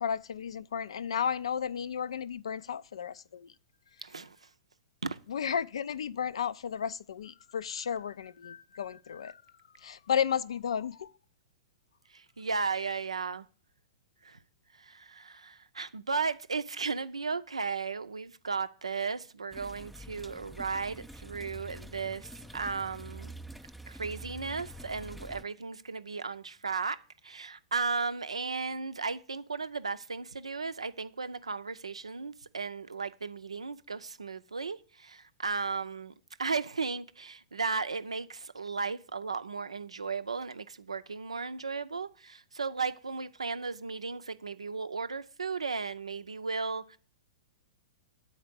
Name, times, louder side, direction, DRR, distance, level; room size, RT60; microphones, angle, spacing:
voice 1, 0.0-3.5 5.3-9.4 9.8-11.1, left 8 dB, 70° left, 0.4 m, -33 dB
voice 2, 4.0-4.4 5.0-5.2 12.1-13.5 14.2-14.4 14.8-23.3 23.9-36.1 36.4-47.0, right 4 dB, 85° right, 0.5 m, -35 dB
sound 1, 19.5-25.4, equal, ahead, 0.4 m, -46 dB
7.8 x 4.3 x 6.7 m
figure-of-eight pair, 110°, 3 cm